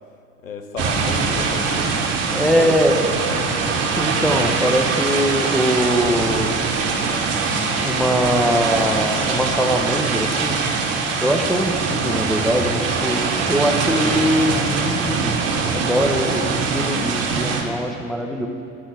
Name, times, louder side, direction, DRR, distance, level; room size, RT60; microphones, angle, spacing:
voice 1, 0.4-3.5, left 4 dB, 85° left, 7 dB, 0.6 m, -34 dB
sound 1, 0.8-17.6, right 4 dB, 40° right, 1.0 m, -22 dB
sound 2, 1.5-14.2, right 2 dB, 80° right, 1.4 m, -41 dB
voice 2, 2.3-3.1 3.9-6.5 7.7-10.6 11.2-18.5, equal, ahead, 3 dB, 0.5 m, -22 dB
sound 3, 4.5-14.9, left 1 dB, 40° left, 1.8 m, -41 dB
10.0 x 4.0 x 6.0 m, 2.7 s
figure-of-eight pair, 70°, 39 cm